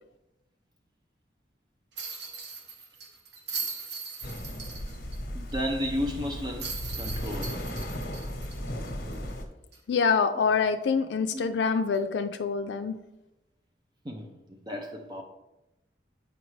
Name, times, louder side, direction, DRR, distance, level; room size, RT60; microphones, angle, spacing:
sound 1, 2.0-5.2 5.5-5.6 6.6-9.3 9.7-9.8 11.9-12.1, right 4 dB, 85° right, 1.2 m, -39 dB
sound 2, 4.2-9.5, equal, 55° left, 0.9 m, -36 dB
voice 1, 5.3-6.7 7.0-7.6 10.4-10.5 11.3-11.5 14.0-15.2, left 1 dB, 25° right, 0.5 m, -33 dB
voice 2, 9.9-13.0, left 5 dB, 90° left, 0.4 m, -26 dB
8.4 x 5.2 x 3.1 m
head